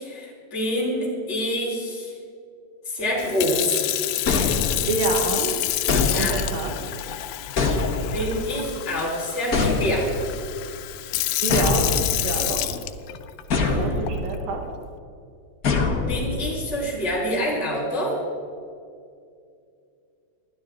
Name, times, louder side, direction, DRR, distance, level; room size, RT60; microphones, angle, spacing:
voice 1, 0.0-2.1 2.9-3.9 6.0-6.4 8.1-10.1 13.6-13.8 16.1-18.2, equal, 20° left, -5 dB, 4.5 m, -26 dB
Sink (filling or washing) / Fill (with liquid), 3.2-13.4 14.1-14.4, left 15 dB, 85° left, 2.5 m, -28 dB
sound 1, 4.3-5.1 5.9-6.7 7.6-8.4 9.5-10.3 11.5-12.5 13.5-14.3 15.6-16.6, left 3 dB, 60° left, 0.9 m, -24 dB
voice 2, 4.9-5.5 6.1-6.7 11.4-12.7 13.8-14.6, right 3 dB, 80° right, 2 dB, 3.4 m, -27 dB
28.0 x 12.0 x 3.8 m, 2.4 s
omnidirectional pair, 4.1 m